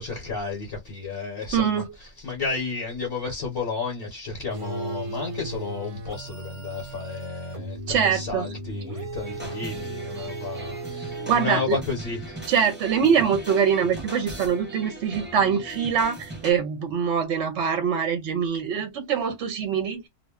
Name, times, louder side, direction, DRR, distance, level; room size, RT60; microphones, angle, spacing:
voice 1, 0.0-12.5, left 4 dB, 55° left, 1.0 m, -32 dB
voice 2, 1.5-1.9 7.9-8.5 11.3-11.8 12.5-20.0, right 7 dB, 70° right, 0.8 m, -23 dB
sound 1, 4.5-12.0, right 2 dB, 40° right, 0.5 m, -36 dB
sound 2, 9.2-16.5, right 1 dB, 10° right, 0.8 m, -39 dB
2.3 x 2.1 x 3.4 m
omnidirectional pair, 1.3 m